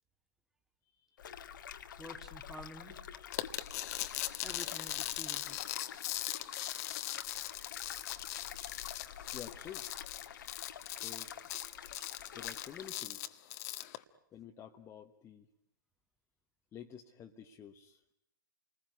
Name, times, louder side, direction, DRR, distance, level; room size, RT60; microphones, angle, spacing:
sound 1, 1.2-12.9, left 8 dB, 70° left, 1.6 m, -49 dB
voice 1, 2.0-3.0 4.4-5.6, equal, 5° right, 4 dB, 2.0 m, -49 dB
sound 2, 3.3-14.0, left 15 dB, 45° left, 1.4 m, -40 dB
voice 2, 9.3-9.9 10.9-11.3 12.3-13.5 14.3-15.5 16.7-18.1, left 9 dB, 25° left, 3 dB, 1.4 m, -50 dB
29.5 x 20.5 x 9.7 m, 0.77 s
hypercardioid pair, 120°, 11 cm